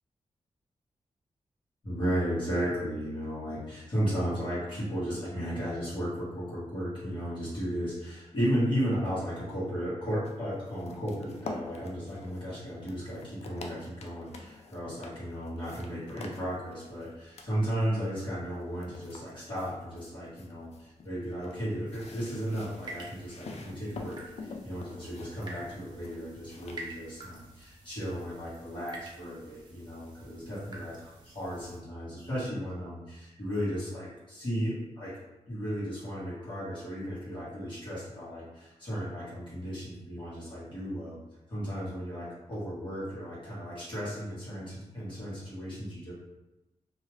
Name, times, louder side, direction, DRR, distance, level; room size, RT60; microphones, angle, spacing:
voice 1, 1.8-35.1 35.5-41.2 41.5-46.1, equal, 45° left, -10 dB, 1.4 m, -34 dB
sound 1, 10.2-27.2, left 3 dB, 65° left, 0.4 m, -47 dB
sound 2, 21.9-31.8, right 2 dB, 40° right, 0.6 m, -49 dB
2.7 x 2.4 x 3.0 m, 1.0 s
wide cardioid pair, 140°, 12 cm